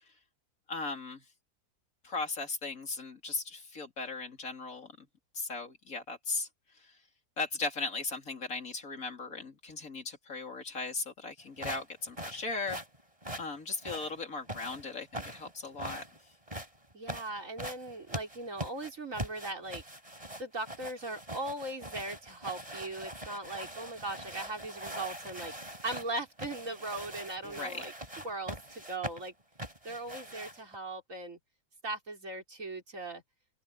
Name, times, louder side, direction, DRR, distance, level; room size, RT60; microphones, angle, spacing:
voice 1, 0.7-1.2 2.0-5.1 5.3-6.5 7.4-12.8 13.4-16.0 27.4-27.9, left 3 dB, 55° left, 3.5 m, -37 dB
sound 1, 11.6-30.7, right 1 dB, 20° right, 5.7 m, -42 dB
voice 2, 16.9-19.8 20.4-25.5 25.8-27.9 28.2-29.3 29.8-31.4 31.8-33.2, right 2 dB, 55° right, 4.3 m, -39 dB
open air
omnidirectional pair, 1.7 m